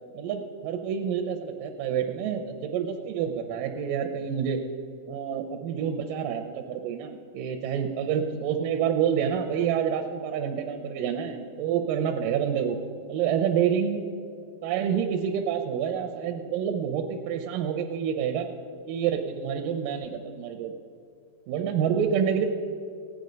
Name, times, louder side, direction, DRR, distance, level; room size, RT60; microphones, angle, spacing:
voice 1, 0.1-4.6 5.1-12.8 13.1-14.0 14.6-18.5 18.9-20.7 21.5-22.5, right 8 dB, 80° right, 5 dB, 2.2 m, -28 dB
16.0 x 9.5 x 5.3 m, 2.3 s
omnidirectional pair, 4.1 m